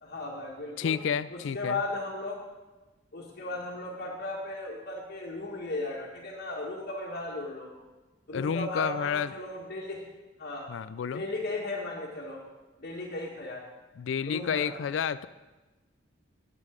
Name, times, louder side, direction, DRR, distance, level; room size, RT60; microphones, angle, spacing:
voice 1, 0.0-1.0 1.3-2.4 3.1-7.7 8.3-10.0 10.4-10.7 11.1-12.4 12.8-13.6 14.3-14.8, left 2 dB, 55° left, -5 dB, 1.7 m, -36 dB
voice 2, 0.8-1.8 8.3-9.3 10.7-11.2 14.0-15.3, left 7 dB, 80° left, 16 dB, 0.3 m, -30 dB
9.9 x 8.4 x 5.1 m, 1.2 s
head